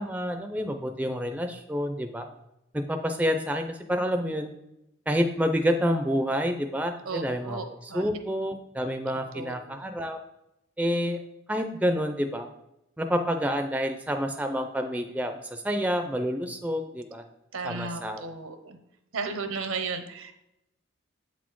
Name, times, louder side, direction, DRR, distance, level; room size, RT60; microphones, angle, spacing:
voice 1, 0.0-2.3 2.7-4.5 5.1-10.2 10.8-11.2 11.5-12.5 13.0-17.2 17.6-18.2, equal, 5° right, 6 dB, 0.4 m, -28 dB
voice 2, 7.0-8.1 9.1-9.6 17.5-18.8 19.1-20.3, right 4 dB, 80° right, 8 dB, 0.8 m, -35 dB
7.8 x 4.1 x 4.6 m, 0.86 s
head